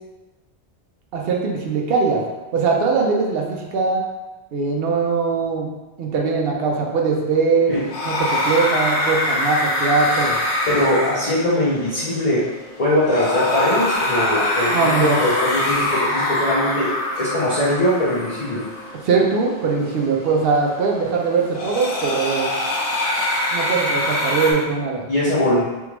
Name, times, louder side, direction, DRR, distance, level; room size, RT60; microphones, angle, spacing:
voice 1, 1.1-2.2 2.5-4.0 4.5-5.7 6.0-7.7 8.0-10.4 14.7-15.2 19.0-22.5 23.5-25.1, right 4 dB, 65° right, 0 dB, 0.7 m, -21 dB
sound 1, 7.7-24.5, left 1 dB, 75° left, 0.9 m, -24 dB
voice 2, 10.7-12.4 12.8-16.9 17.2-18.6 25.1-25.6, left 1 dB, 40° left, -9 dB, 0.6 m, -21 dB
3.5 x 2.3 x 3.0 m, 1.1 s
omnidirectional pair, 1.2 m